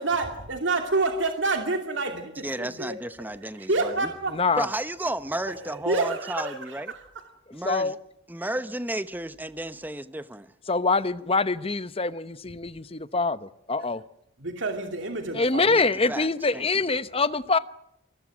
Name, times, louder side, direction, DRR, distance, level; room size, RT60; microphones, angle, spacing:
voice 1, 0.0-3.0 3.6-4.3 5.5-7.0 14.4-15.8, right 3 dB, 65° right, 2.7 m, -28 dB
voice 2, 2.4-4.1 4.6-6.9 7.5-7.9 8.3-10.5 15.7-15.8 16.1-16.7, right 1 dB, 10° right, 0.9 m, -33 dB
voice 3, 4.3-4.7 7.6-7.9 10.7-14.0 15.3-17.6, left 3 dB, 30° left, 0.9 m, -25 dB
28.5 x 21.5 x 6.2 m
head